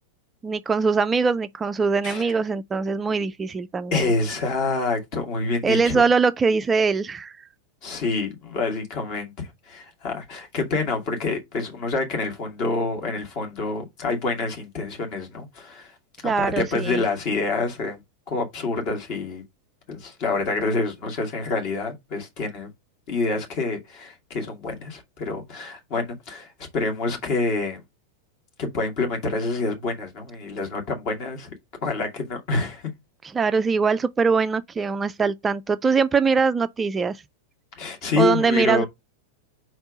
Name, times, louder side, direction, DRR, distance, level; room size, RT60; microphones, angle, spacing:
voice 1, 0.4-4.1 5.6-7.5 16.2-17.0 33.2-37.2 38.2-38.8, right 5 dB, 15° right, 0.3 m, -22 dB
voice 2, 2.0-2.4 3.9-6.0 7.8-15.9 16.4-18.0 18.3-19.4 19.9-22.7 23.1-27.8 28.6-31.5 31.8-32.8 37.8-38.9, left 3 dB, 40° left, 2.2 m, -27 dB
4.6 x 4.3 x 5.1 m
figure-of-eight pair, 90°, 0 cm